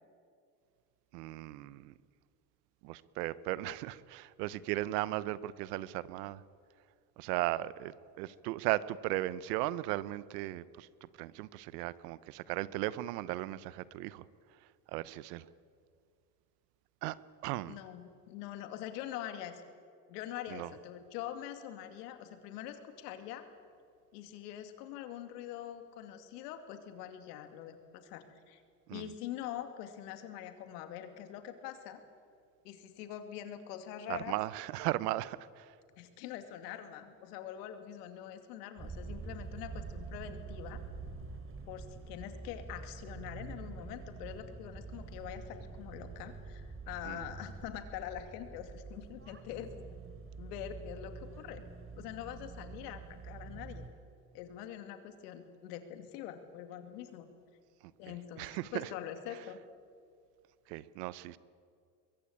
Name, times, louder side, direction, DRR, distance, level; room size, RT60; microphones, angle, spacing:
voice 1, 1.1-1.9 2.8-6.4 7.2-14.2 14.9-15.4 17.0-17.2 17.4-17.8 20.5-20.7 28.9-29.0 34.1-35.7 47.0-47.2 58.4-58.9 60.7-61.4, right 16 dB, 85° right, 18 dB, 1.0 m, -36 dB
voice 2, 17.7-19.6 20.1-23.5 24.1-28.6 28.9-32.0 32.6-34.4 36.0-40.8 41.7-49.7 50.4-51.6 52.0-53.9 54.3-57.3 58.0-59.6, left 11 dB, 85° left, 8 dB, 2.7 m, -44 dB
sound 1, 38.8-53.9, right 4 dB, 25° right, 3.4 m, -46 dB
23.0 x 22.5 x 8.7 m, 2.3 s
supercardioid pair, 80°, 46 cm